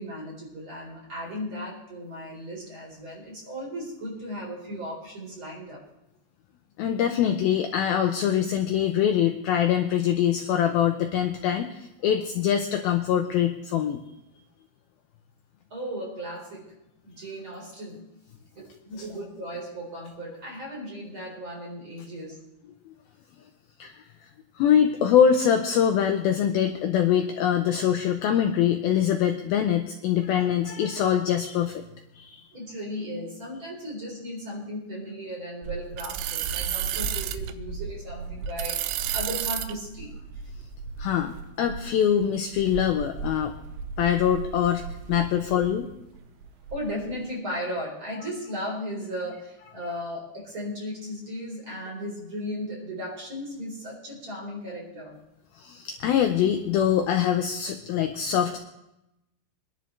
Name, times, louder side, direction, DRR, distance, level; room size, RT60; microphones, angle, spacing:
voice 1, 0.0-5.8 15.7-16.6 17.0-18.1 18.5-22.4 32.5-40.1 46.7-55.2, equal, 30° right, -3 dB, 4.5 m, -36 dB
voice 2, 6.8-14.0 23.8-23.9 24.6-31.8 32.2-32.4 41.0-43.5 44.0-45.9 55.6-58.6, left 9 dB, 85° left, 5 dB, 2.1 m, -23 dB
sound 1, 35.6-45.8 46.1-47.1, right 7 dB, 90° right, 3.1 m, -33 dB
24.5 x 11.0 x 3.3 m, 0.88 s
omnidirectional pair, 5.2 m